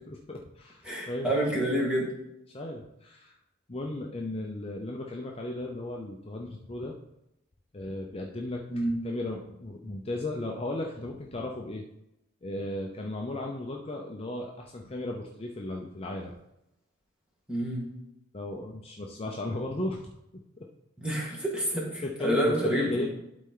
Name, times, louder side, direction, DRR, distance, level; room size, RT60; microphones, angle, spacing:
voice 1, 0.1-1.3 2.5-3.4 3.7-7.0 7.7-8.6 9.0-11.8 12.4-16.4 18.3-20.1 20.6-20.7 22.0-23.1, left 2 dB, 30° left, 0 dB, 0.6 m, -35 dB
voice 2, 0.8-2.1 8.7-9.0 17.5-17.9 21.0-23.1, right 1 dB, 5° right, -4 dB, 2.0 m, -28 dB
11.5 x 4.3 x 3.8 m, 0.87 s
head